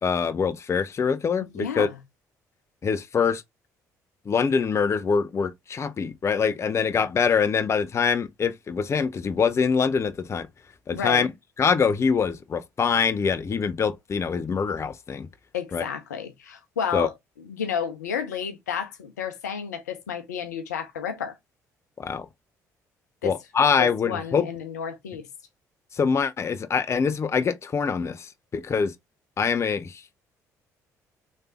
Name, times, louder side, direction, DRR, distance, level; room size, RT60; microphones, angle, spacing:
voice 1, 0.0-1.9 2.8-3.4 4.3-10.5 10.9-11.3 11.6-15.3 15.7-15.8 16.9-17.1 22.0-22.3 23.2-24.5 26.0-28.9 29.4-30.1, left 6 dB, 30° left, 0.4 m, -24 dB
voice 2, 1.5-2.0 10.9-11.3 15.5-21.4 23.2-23.3 23.8-25.3, left 7 dB, 85° left, 0.6 m, -31 dB
3.3 x 3.2 x 2.7 m
hypercardioid pair, 50°, 9 cm